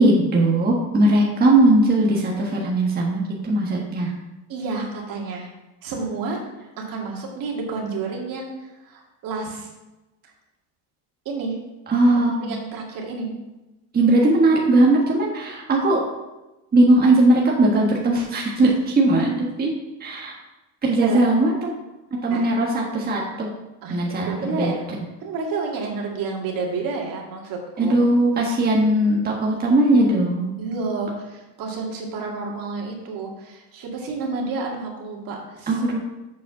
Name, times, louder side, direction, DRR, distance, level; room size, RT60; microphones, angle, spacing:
voice 1, 0.0-4.1 11.9-12.6 13.9-16.0 16.7-19.7 20.0-20.4 20.8-21.7 22.2-23.5 23.9-24.7 27.8-30.6 35.7-36.0, right 2 dB, 25° right, -2 dB, 1.5 m, -19 dB
voice 2, 4.5-5.5 5.8-6.4 6.8-8.5 8.8-9.7 10.2-10.3 11.3-11.6 12.1-13.3 21.0-21.4 22.3-22.5 23.8-24.9 25.2-27.9 30.6-35.8, right 4 dB, 60° right, -1 dB, 2.3 m, -30 dB
7.4 x 5.6 x 6.0 m, 1.0 s
cardioid pair, 130°, 39 cm